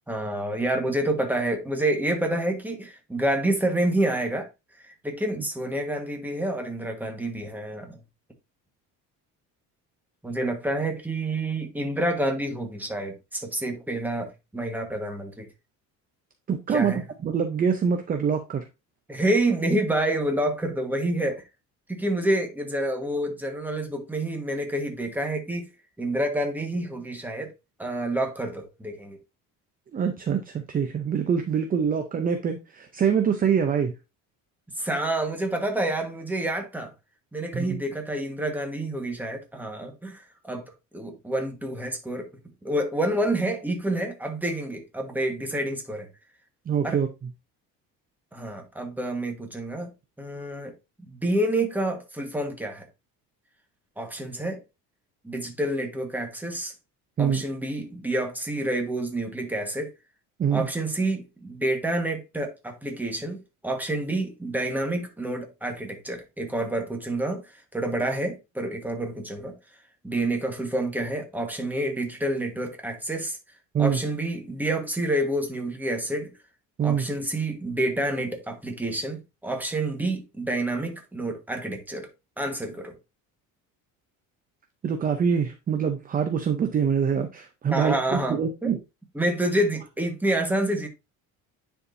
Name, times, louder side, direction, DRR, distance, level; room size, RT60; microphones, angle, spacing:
voice 1, 0.1-4.5 4.8-8.0 10.2-15.5 16.7-17.0 19.1-21.4 21.9-25.7 26.0-27.5 27.8-29.2 34.8-36.9 37.3-40.6 40.9-42.3 42.6-46.1 46.8-47.0 48.3-49.9 50.2-50.7 51.1-52.9 54.0-54.6 55.2-56.7 57.2-59.9 60.5-69.5 70.0-73.4 73.8-76.3 76.8-82.1 82.4-82.9 87.7-88.8 89.1-90.9, right 1 dB, 5° right, 1.4 m, -28 dB
voice 2, 16.5-16.9 17.2-18.6 29.9-33.9 37.5-37.8 46.7-47.1 57.2-57.4 60.4-60.7 73.7-74.0 76.8-77.1 84.8-88.8, right 7 dB, 25° right, 0.7 m, -24 dB
9.8 x 4.5 x 2.6 m
cardioid pair, 145°, 33 cm